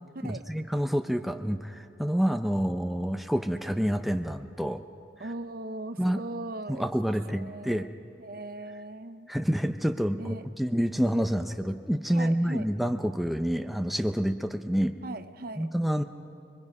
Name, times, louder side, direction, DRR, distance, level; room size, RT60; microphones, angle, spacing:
voice 1, 0.2-4.8 6.0-6.2 6.7-7.9 9.3-14.9 15.6-16.0, equal, ahead, 6 dB, 0.6 m, -28 dB
voice 2, 5.2-6.9 7.3-7.9 8.2-9.3 10.2-10.4 12.1-12.7 15.0-15.7, right 2 dB, 50° right, 11 dB, 0.6 m, -39 dB
26.0 x 22.5 x 5.4 m, 2.4 s
head